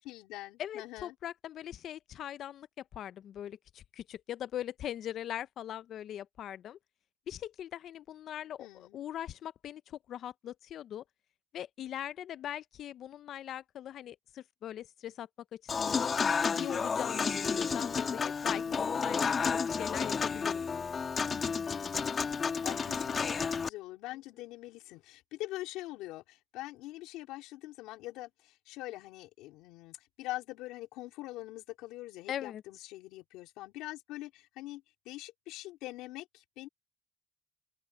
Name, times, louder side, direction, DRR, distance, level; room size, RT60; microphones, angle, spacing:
voice 1, 0.0-1.1 8.6-9.0 18.5-18.9 22.6-36.7, left 17 dB, 80° left, 3.2 m, -44 dB
voice 2, 0.6-2.7 2.9-6.8 7.3-11.0 11.5-16.2 16.5-20.6 32.3-32.6, left 11 dB, 60° left, 0.6 m, -41 dB
Human voice / Acoustic guitar / Piano, 15.7-23.7, left 5 dB, 40° left, 1.4 m, -31 dB
open air
supercardioid pair, 80°, 0 cm